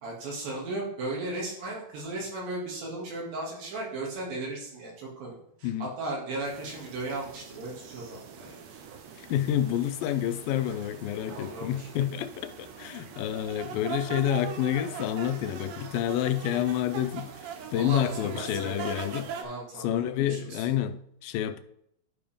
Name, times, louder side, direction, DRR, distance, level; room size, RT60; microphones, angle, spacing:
voice 1, 0.0-8.6 11.2-11.9 17.7-18.9 19.4-20.7, right 2 dB, 85° right, 4.1 m, -36 dB
sound 1, 6.5-19.4, right 7 dB, 70° right, 1.7 m, -41 dB
voice 2, 9.2-17.3 17.7-19.3 19.8-21.6, left 11 dB, 85° left, 2.3 m, -29 dB
11.5 x 5.0 x 3.5 m
omnidirectional pair, 4.0 m